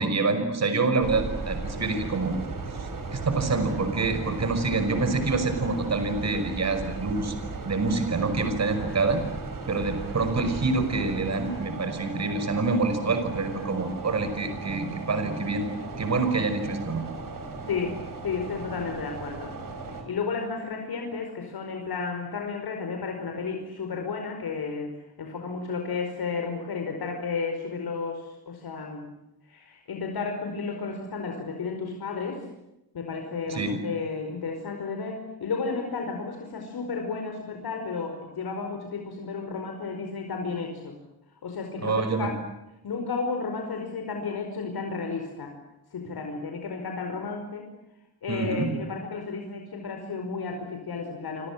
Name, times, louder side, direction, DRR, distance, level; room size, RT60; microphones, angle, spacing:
voice 1, 0.0-2.3 2.8-7.3 7.7-9.2 9.7-15.7 16.0-17.0 33.5-33.8 41.8-42.3 48.3-48.7, right 3 dB, 45° right, 9 dB, 5.7 m, -26 dB
sound 1, 1.0-20.0, right 3 dB, 60° right, 5.7 m, -36 dB
voice 2, 18.2-19.5 20.0-29.1 29.5-32.4 32.9-40.9 41.4-42.3 42.8-45.5 45.9-47.7 48.2-51.5, left 4 dB, 80° left, 3 dB, 5.2 m, -32 dB
28.5 x 25.5 x 7.6 m, 0.91 s
wide cardioid pair, 150°, 37 cm